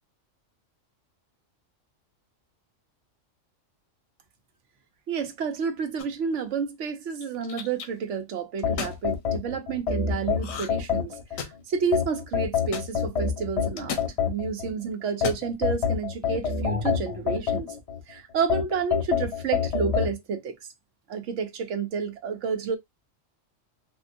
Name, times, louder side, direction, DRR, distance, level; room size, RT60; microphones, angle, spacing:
voice 1, 5.1-17.8 18.1-20.6 21.1-22.8, right 6 dB, 70° right, 1.0 m, -30 dB
sound 1, 6.0-6.3 7.1-7.9 8.6-9.0 10.4-10.9 11.1-11.7 12.7-12.9 13.8-14.1 15.1-15.5, left 7 dB, 90° left, 1.1 m, -35 dB
sound 2, 8.6-11.4 11.9-14.7 15.2-18.0 18.5-20.1, left 7 dB, 30° left, 1.0 m, -26 dB
3.5 x 2.4 x 2.5 m
omnidirectional pair, 1.3 m